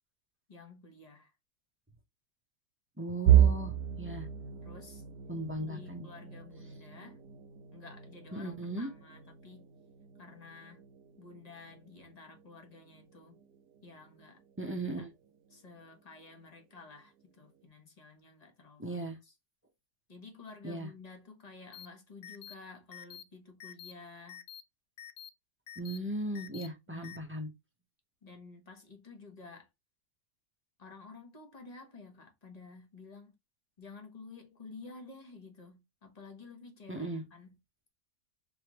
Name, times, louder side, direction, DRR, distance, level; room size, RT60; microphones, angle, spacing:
voice 1, 0.5-1.3 4.6-5.0 5.6-7.2 7.7-9.7 10.2-10.8 11.2-13.4 13.8-14.4 15.0-15.1 15.5-19.3 20.1-24.4 26.9-27.2 28.2-29.7 30.8-33.3 33.8-37.5, left 4 dB, 25° left, 1.2 m, -52 dB
voice 2, 3.0-4.3 5.3-6.1 8.3-8.9 14.6-15.1 18.8-19.2 20.6-20.9 25.8-27.5 36.9-37.2, right 1 dB, 10° right, 0.6 m, -37 dB
sound 1, 3.3-15.1 15.5-15.8 16.1-16.3 17.2-17.7, right 11 dB, 75° right, 1.1 m, -33 dB
sound 2, 21.7-21.9 22.2-22.5 22.9-23.2 23.6-23.9 24.3-24.6 25.0-25.3 25.7-26.0 26.3-26.7 27.0-27.2, left 10 dB, 70° left, 0.7 m, -47 dB
4.1 x 3.3 x 3.0 m
omnidirectional pair, 1.7 m